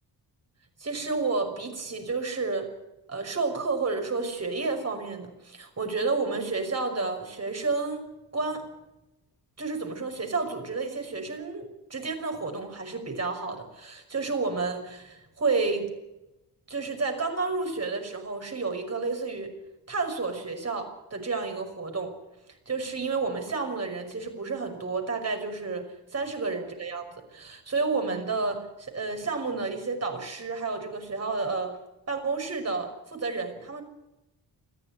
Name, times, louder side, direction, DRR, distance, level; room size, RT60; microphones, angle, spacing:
voice 1, 0.8-2.7 3.1-8.1 8.3-8.7 9.6-15.9 16.7-19.5 19.9-22.2 22.7-31.8 32.1-33.8, right 4 dB, 35° right, 5 dB, 5.7 m, -31 dB
21.0 x 15.0 x 9.8 m, 0.94 s
cardioid pair, 95°, 41 cm